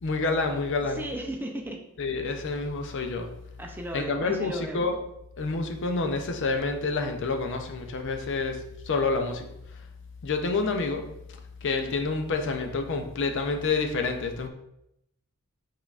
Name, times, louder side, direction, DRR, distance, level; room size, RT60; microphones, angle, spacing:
voice 1, 0.0-1.1 2.0-3.3 3.9-5.0 5.4-9.5 10.2-11.1 11.6-14.5, left 3 dB, 60° left, 5 dB, 0.5 m, -28 dB
voice 2, 1.0-1.8 3.6-4.9, right 1 dB, 10° right, 2 dB, 0.4 m, -35 dB
5.3 x 3.7 x 2.4 m, 0.79 s
head